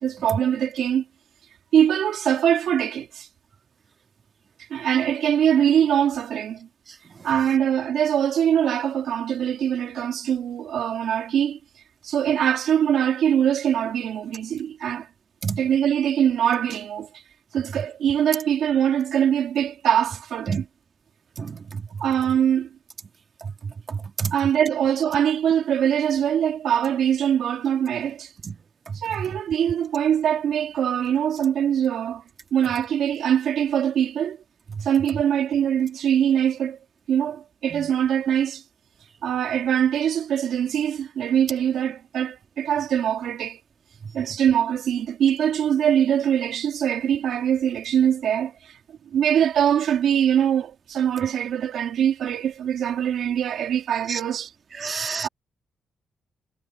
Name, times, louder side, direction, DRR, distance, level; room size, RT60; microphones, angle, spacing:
voice 1, 0.0-1.0 1.7-3.3 4.7-6.7 7.2-11.6 12.0-15.1 15.6-17.1 17.5-20.6 22.0-22.7 24.3-28.3 28.9-32.2 32.5-34.4 34.8-36.8 37.1-38.6 39.2-43.6 44.1-48.8 49.1-54.5 55.2-55.3, right 9 dB, 80° right, 2.7 m, -22 dB
voice 2, 21.4-21.8 23.4-23.5 23.9-24.3 28.9-29.0 37.7-37.9 54.1-54.2 54.8-55.3, right 5 dB, 45° right, 1.9 m, -29 dB
cardioid pair, 85°, 0 cm